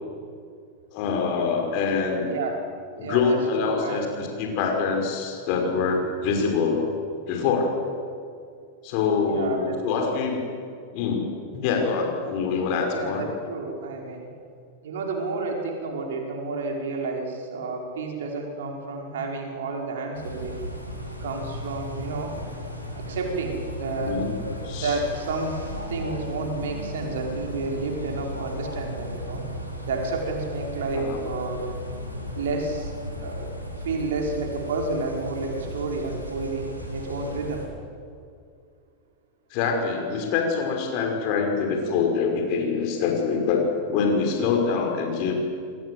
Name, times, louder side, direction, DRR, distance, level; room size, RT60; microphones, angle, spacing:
voice 1, 0.9-2.3 3.0-6.9 7.3-7.8 8.8-10.5 10.9-11.3 11.5-13.2 24.0-24.3 24.6-25.0 30.9-31.2 39.5-45.3, left 5 dB, 45° left, 2 dB, 5.7 m, -25 dB
voice 2, 2.3-2.7 3.0-4.1 9.3-9.8 12.9-14.3 14.8-20.5 21.2-22.4 23.0-24.2 24.8-25.6 25.9-29.4 29.8-31.7 32.3-33.5 33.8-37.6, right 3 dB, 60° right, 1 dB, 5.0 m, -30 dB
sound 1, 20.1-37.7, equal, 85° right, 5.3 m, -35 dB
28.5 x 21.5 x 8.1 m, 2.3 s
figure-of-eight pair, 90°, 0 cm